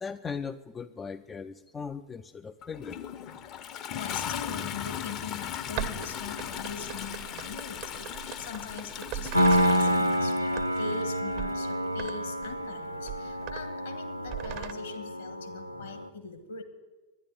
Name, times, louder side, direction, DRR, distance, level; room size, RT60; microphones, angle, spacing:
voice 1, 0.0-3.0, left 6 dB, 20° left, 11 dB, 0.4 m, -38 dB
Toilet flush, 2.6-11.0 12.1-12.2, left 9 dB, 35° left, 0.7 m, -38 dB
voice 2, 3.8-16.6, left 5 dB, 65° left, 7 dB, 1.8 m, -41 dB
sound 1, 5.8-10.0 10.5-11.0 11.3-11.6 12.0-12.1 12.4-12.6 13.0-13.7 14.2-14.7, right 12 dB, 45° right, 0.7 m, -39 dB
Piano, 9.3-16.1, equal, 90° right, 0.5 m, -28 dB
11.0 x 10.5 x 9.5 m, 1.2 s
figure-of-eight pair, 90°, 0 cm